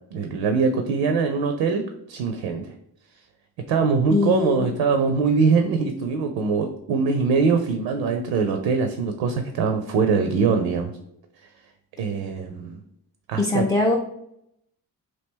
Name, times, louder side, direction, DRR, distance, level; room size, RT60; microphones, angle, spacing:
voice 1, 0.1-2.7 3.7-10.9 12.0-12.8 13.3-13.7, right 5 dB, 65° right, 5 dB, 0.6 m, -22 dB
voice 2, 4.1-4.6 13.4-14.0, left 3 dB, 10° left, 0 dB, 0.3 m, -21 dB
3.0 x 2.4 x 3.5 m, 0.76 s
hypercardioid pair, 40°, 47 cm